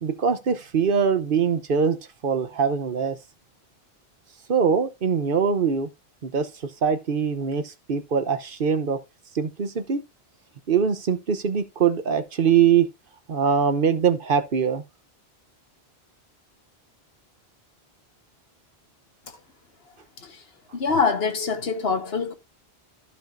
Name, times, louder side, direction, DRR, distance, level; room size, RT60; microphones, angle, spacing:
voice 1, 0.0-3.2 4.5-5.9 6.2-9.0 9.3-10.0 10.7-12.9 13.3-14.8, right 6 dB, 60° right, 1.0 m, -23 dB
voice 2, 20.7-22.3, left 5 dB, 70° left, 1.5 m, -24 dB
15.0 x 4.9 x 2.6 m
omnidirectional pair, 1.0 m